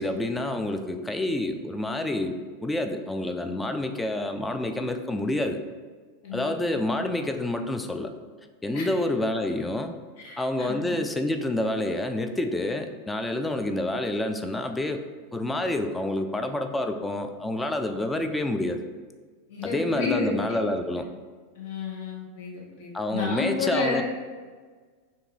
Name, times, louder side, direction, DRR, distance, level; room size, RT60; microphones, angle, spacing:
voice 1, 0.0-5.6 6.3-8.1 8.6-9.9 10.4-15.0 15.3-18.8 19.6-21.1 22.9-24.0, left 1 dB, 10° left, 5 dB, 0.3 m, -28 dB
voice 2, 6.2-6.9 8.7-8.9 10.2-11.0 19.5-20.3 21.5-24.0, left 4 dB, 60° left, -2 dB, 0.8 m, -31 dB
2.6 x 2.6 x 3.9 m, 1.5 s
figure-of-eight pair, 90°, 0 cm